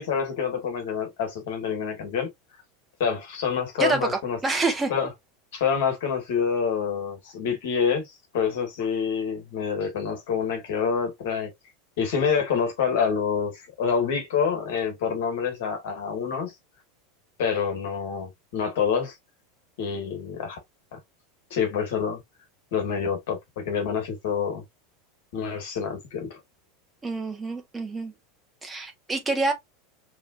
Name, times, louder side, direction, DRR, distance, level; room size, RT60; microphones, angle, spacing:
voice 1, 0.0-2.3 3.0-4.4 4.9-5.1 5.5-8.1 8.3-11.5 12.0-16.5 17.4-19.1 19.8-20.6 20.9-21.0 21.5-22.2 22.7-24.6 25.3-26.4, left 6 dB, 55° left, 1.8 m, -27 dB
voice 2, 3.8-4.9 27.0-28.1 28.6-29.5, right 3 dB, 15° right, 1.3 m, -27 dB
4.8 x 3.3 x 2.4 m
figure-of-eight pair, 80°, 0 cm